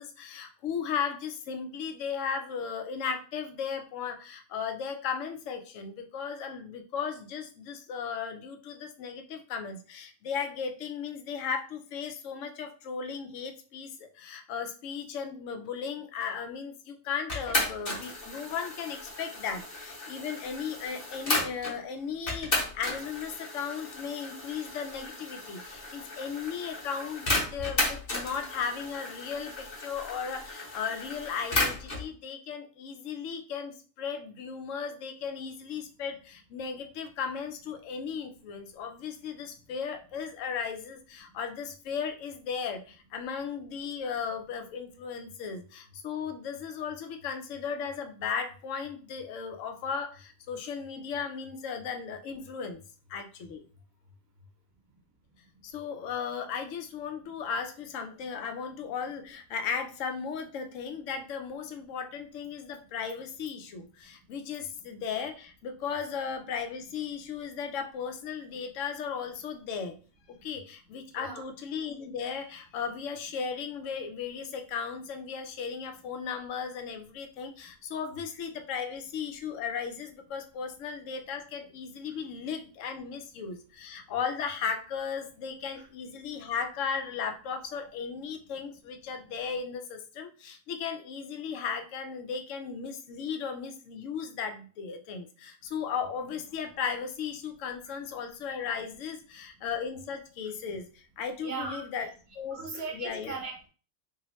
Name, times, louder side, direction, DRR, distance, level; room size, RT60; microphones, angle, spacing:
voice 1, 0.0-52.8 53.1-53.6 55.6-70.0 70.3-102.1 102.4-103.4, left 6 dB, 75° left, 6 dB, 0.9 m, -36 dB
sound 1, 17.3-21.8 22.3-32.1, left 2 dB, 35° left, 1.0 m, -34 dB
voice 2, 101.4-101.8 102.5-103.7, right 4 dB, 55° right, 1 dB, 0.9 m, -38 dB
3.0 x 2.7 x 3.0 m, 0.38 s
omnidirectional pair, 1.4 m